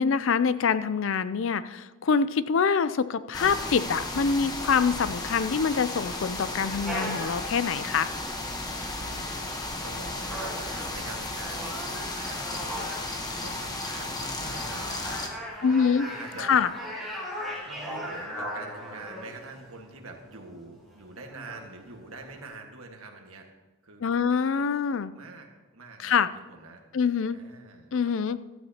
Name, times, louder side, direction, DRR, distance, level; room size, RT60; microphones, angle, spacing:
voice 1, 0.0-8.1 15.6-16.1 16.4-16.7 24.0-25.1 26.0-26.3 26.9-27.4 27.9-28.4, left 6 dB, 60° left, 14 dB, 0.4 m, -25 dB
sound 1, 3.3-15.3, left 2 dB, 15° left, 1.0 m, -34 dB
sound 2, 6.8-22.4, equal, ahead, 2.3 m, -40 dB
voice 2, 9.0-13.0 13.4-15.2 15.6-16.5 17.6-23.5 23.8-24.7 25.1-26.1 26.5-26.8 27.3-27.9, right 3 dB, 75° right, 3 dB, 1.7 m, -45 dB
15.0 x 12.5 x 2.9 m, 1.2 s
head